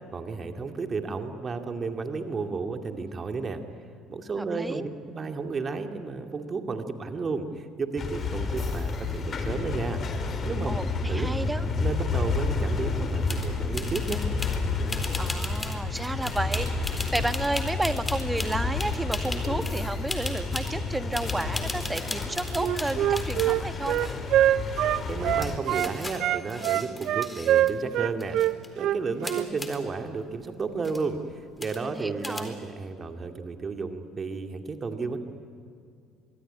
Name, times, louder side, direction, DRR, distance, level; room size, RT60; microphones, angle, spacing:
voice 1, 0.1-3.6 4.1-10.0 10.4-10.7 11.1-11.3 11.8-14.3 25.1-28.4 28.8-35.2, right 4 dB, 35° right, 5 dB, 2.3 m, -32 dB
voice 2, 4.4-4.9 10.7-11.7 15.2-24.0 31.8-32.6, right 2 dB, 15° right, 10 dB, 1.5 m, -32 dB
sound 1, 8.0-25.6, left 3 dB, 45° left, 3.7 m, -30 dB
sound 2, 13.3-13.5 13.7-14.6 14.9-19.8 20.1-20.7 21.1-23.6 23.8-24.5 25.1-25.2 25.4-27.7 28.0-28.7 29.2-29.8 30.4-30.5 30.8-31.1 31.6-32.0 32.2-32.4, left 2 dB, 20° left, 4.1 m, -37 dB
Wind instrument woodwind instrument, 22.5-25.9 26.2-29.5, right 13 dB, 60° right, 0.7 m, -24 dB
25.5 x 22.5 x 9.8 m, 2.3 s
hypercardioid pair, 60°, 0 cm